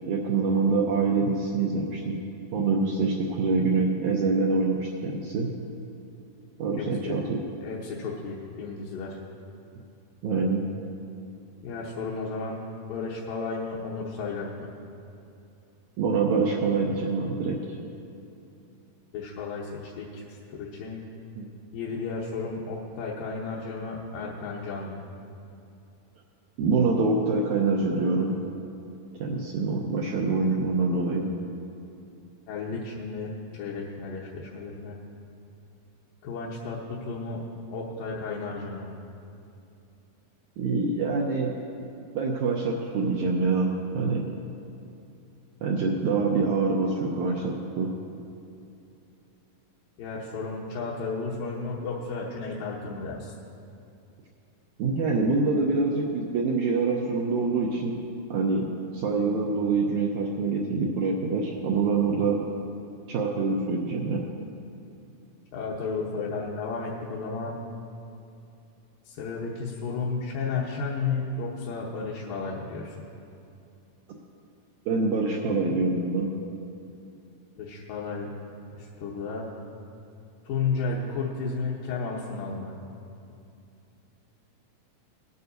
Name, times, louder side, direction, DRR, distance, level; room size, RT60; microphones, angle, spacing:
voice 1, 0.0-2.1 2.5-5.5 6.6-7.4 10.2-10.6 16.0-17.6 21.3-21.4 26.6-28.3 29.2-31.3 40.6-41.5 42.1-43.7 43.9-44.2 45.6-47.9 54.8-58.0 58.3-58.7 58.9-62.4 63.1-64.2 74.9-76.3, right 4 dB, 75° right, -1 dB, 1.8 m, -25 dB
voice 2, 6.8-7.2 7.6-9.2 11.6-12.6 12.9-14.7 19.1-21.0 21.7-25.0 32.5-35.0 36.2-37.4 37.7-38.9 50.0-53.3 65.5-67.6 69.1-73.0 77.6-78.3 78.7-79.5 80.5-82.7, left 4 dB, 75° left, -5 dB, 2.5 m, -33 dB
19.0 x 9.5 x 2.6 m, 2.7 s
omnidirectional pair, 4.2 m